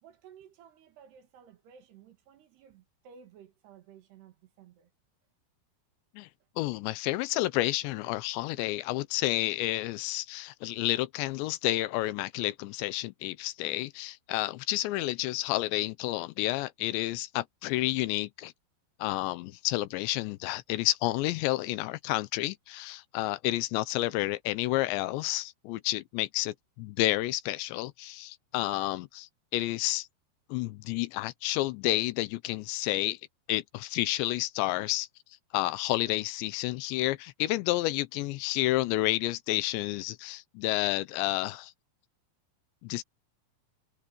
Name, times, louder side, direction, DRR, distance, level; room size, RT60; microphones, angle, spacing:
voice 1, 0.0-4.9, right 8 dB, 70° right, 4.0 m, -55 dB
voice 2, 6.6-18.5 19.0-30.1 30.5-33.2 33.5-35.1 35.5-41.7 42.8-43.0, left 17 dB, 90° left, 3.1 m, -30 dB
omnidirectional pair, 5.0 m